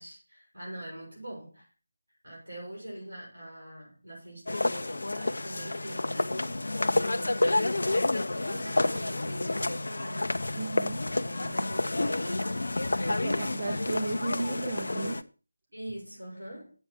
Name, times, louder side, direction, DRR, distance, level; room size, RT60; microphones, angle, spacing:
voice 1, 0.0-1.7 2.2-10.5 11.1-12.7 15.7-16.7, right 1 dB, 90° right, 7.4 m, -43 dB
sound 1, 4.5-15.2, left 2 dB, 60° left, 0.7 m, -29 dB
voice 2, 10.5-11.0 13.0-15.2, right 3 dB, 35° right, 1.4 m, -35 dB
8.2 x 7.9 x 6.1 m
figure-of-eight pair, 160°, 0 cm